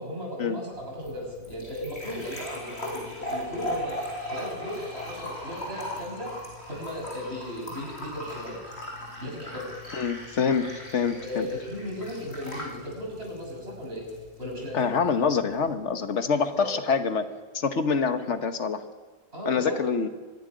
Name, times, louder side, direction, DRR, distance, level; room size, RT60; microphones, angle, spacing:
voice 1, 0.0-4.0 4.3-6.3 6.7-8.6 9.2-9.7 11.1-14.1 14.4-14.8 16.3-16.8 19.3-19.8, left 1 dB, 65° right, -1 dB, 6.7 m, -36 dB
sound 1, 0.7-15.7, left 1 dB, 70° left, 6.2 m, -39 dB
voice 2, 9.9-11.5 14.7-17.3 17.5-18.8 19.4-20.1, left 5 dB, 85° left, 8 dB, 1.5 m, -26 dB
24.0 x 11.5 x 9.4 m, 1.4 s
omnidirectional pair, 1.2 m